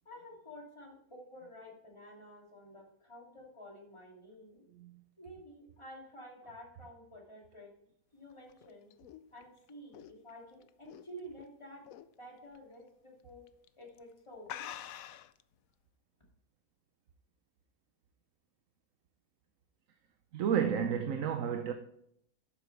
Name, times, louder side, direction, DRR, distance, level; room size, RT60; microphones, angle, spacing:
voice 1, 0.0-4.6 5.2-7.7 8.1-8.9 9.3-11.9 12.2-13.5 13.8-14.7, equal, 20° left, 2.8 m, -51 dB
voice 2, 4.7-5.0 20.3-21.7, right 8 dB, 65° right, 1.1 m, -31 dB
sound 1, 8.3-11.4 11.9-12.2 12.5-12.6 13.5-13.7 14.0-14.1 14.5-15.4, left 11 dB, 75° left, 1.0 m, -46 dB
12.0 x 8.7 x 3.3 m
omnidirectional pair, 1.6 m